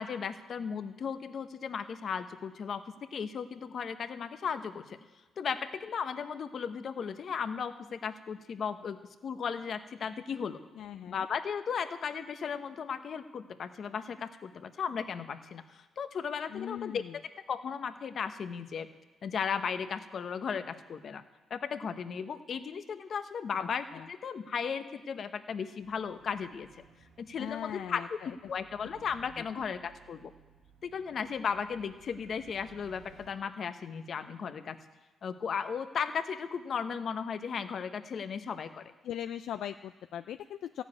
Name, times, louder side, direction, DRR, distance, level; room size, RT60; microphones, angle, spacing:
voice 1, 0.0-5.0 5.4-10.6 11.1-17.0 17.5-18.9 19.2-21.2 21.5-26.8 27.2-30.3 30.8-34.8 35.2-38.8, left 6 dB, 55° left, 10 dB, 0.9 m, -36 dB
voice 2, 10.8-11.3 16.5-17.2 23.6-24.1 27.4-28.4 39.0-40.8, left 10 dB, 75° left, 9 dB, 0.3 m, -40 dB
sound 1, 25.8-33.3, right 7 dB, 85° right, 3.7 m, -59 dB
14.5 x 7.2 x 9.7 m, 1.2 s
cardioid pair, 90°, 0 cm